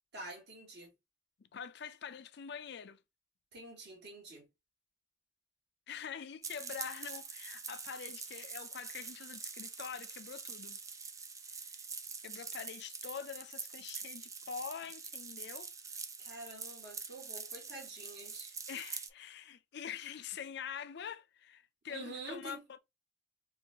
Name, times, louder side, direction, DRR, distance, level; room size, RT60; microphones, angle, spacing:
voice 1, 0.1-0.9 3.5-4.5 16.2-18.6 21.9-22.6, right 2 dB, 60° right, 2.1 m, -47 dB
voice 2, 1.4-3.0 5.9-10.8 11.5-11.8 12.2-15.7 18.7-22.8, left 7 dB, 60° left, 0.4 m, -45 dB
sound 1, 6.4-19.1, right 5 dB, 15° right, 0.4 m, -45 dB
4.7 x 2.5 x 2.9 m
head